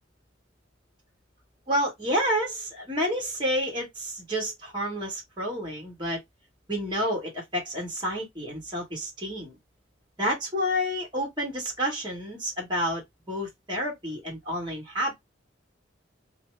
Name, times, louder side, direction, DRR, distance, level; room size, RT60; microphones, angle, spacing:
voice 1, 1.7-6.2 6.7-9.6 10.2-13.0 13.3-15.1, equal, 25° right, 1.6 m, -29 dB
4.9 x 2.1 x 3.3 m
head